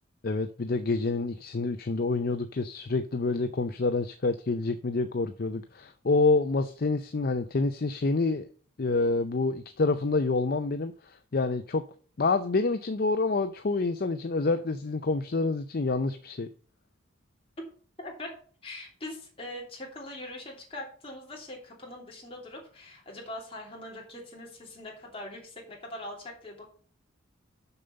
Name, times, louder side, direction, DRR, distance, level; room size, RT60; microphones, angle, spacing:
voice 1, 0.2-8.5 8.8-11.8 12.2-16.5, left 3 dB, 45° left, 0.5 m, -27 dB
voice 2, 18.0-18.3 18.6-26.7, left 1 dB, 30° left, 2.9 m, -42 dB
6.9 x 5.3 x 6.9 m
head